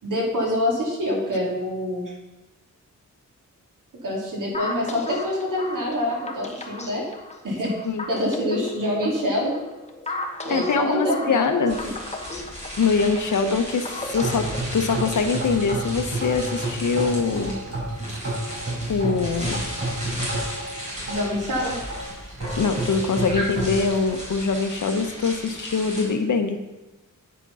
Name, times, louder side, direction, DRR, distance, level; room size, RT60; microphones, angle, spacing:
voice 1, 0.0-2.1 4.0-7.1 7.4-7.7 8.1-9.5 10.4-11.5 11.8-12.0 21.1-21.8 23.3-23.5, left 1 dB, 80° right, -3 dB, 3.2 m, -26 dB
sound 1, 4.5-15.6, left 2 dB, 20° left, 1.0 m, -35 dB
voice 2, 10.5-11.8 12.8-17.6 18.9-19.7 22.6-26.6, left 4 dB, 70° left, 6 dB, 1.1 m, -23 dB
sound 2, 11.7-26.0, equal, 20° right, 4.0 m, -36 dB
sound 3, 14.0-24.1, right 1 dB, 50° right, 4.0 m, -31 dB
9.5 x 8.1 x 5.6 m, 1.1 s
wide cardioid pair, 160°, 31 cm